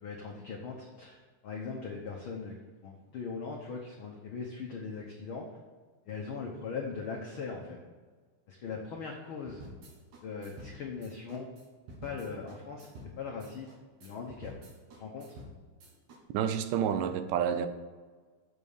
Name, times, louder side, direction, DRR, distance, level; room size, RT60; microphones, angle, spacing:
voice 1, 0.0-2.5 2.8-5.5 6.1-7.8 8.5-9.6 10.2-11.5 12.0-12.9 13.2-13.7 14.0-14.5 15.0-15.3, left 5 dB, 80° left, -1 dB, 1.1 m, -40 dB
sound 1, 9.5-16.2, equal, 70° right, 2.7 m, -50 dB
voice 2, 16.3-17.7, right 8 dB, 90° right, 10 dB, 2.3 m, -29 dB
8.1 x 5.5 x 6.5 m, 1.4 s
omnidirectional pair, 3.7 m